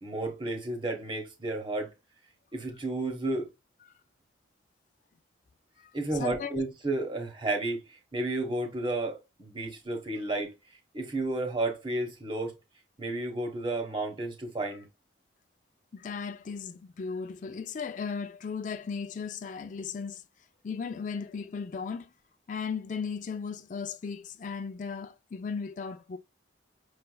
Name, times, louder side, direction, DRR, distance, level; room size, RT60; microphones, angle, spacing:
voice 1, 0.0-1.9 2.5-3.5 5.9-12.6 13.0-14.8, right 2 dB, 25° right, 1.1 m, -32 dB
voice 2, 5.8-6.5 15.9-20.2 20.6-22.1 22.5-26.2, left 5 dB, 40° left, 0.4 m, -36 dB
6.5 x 3.3 x 2.2 m
head